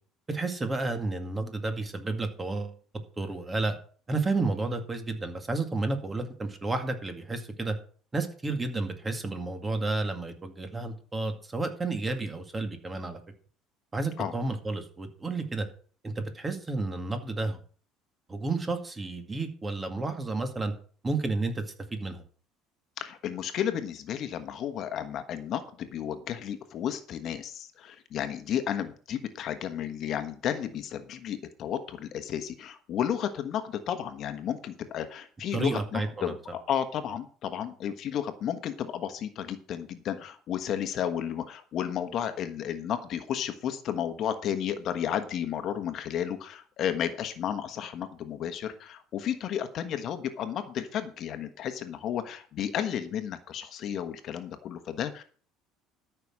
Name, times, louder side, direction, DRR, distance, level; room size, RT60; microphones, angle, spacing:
voice 1, 0.3-2.8 3.2-3.7 4.1-7.7 8.1-13.2 13.9-15.7 16.0-17.6 18.3-20.7 21.0-21.6 21.9-22.2 35.5-36.3, right 3 dB, 15° right, 6 dB, 2.2 m, -31 dB
voice 2, 23.0-55.2, left 9 dB, 50° left, 9 dB, 1.3 m, -33 dB
13.0 x 6.0 x 6.1 m, 0.43 s
cardioid pair, 135°, 0 cm